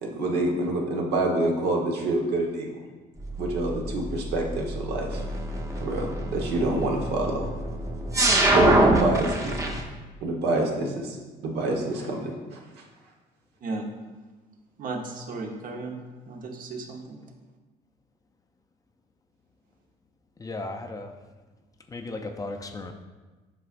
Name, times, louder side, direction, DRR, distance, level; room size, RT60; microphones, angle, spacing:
voice 1, 0.0-2.7 3.4-5.2 5.8-7.5 8.5-9.8 10.2-11.2 11.4-12.6, right 2 dB, 75° right, 0 dB, 1.2 m, -27 dB
sound 1, 3.2-9.8, right 2 dB, 20° right, 0.8 m, -25 dB
voice 2, 14.8-16.0 16.3-17.2, right 3 dB, 55° right, 2 dB, 1.0 m, -35 dB
voice 3, 20.4-21.1 21.9-22.9, left 2 dB, 20° left, 4 dB, 0.5 m, -35 dB
7.7 x 5.3 x 2.5 m, 1.3 s
cardioid pair, 110°, 17 cm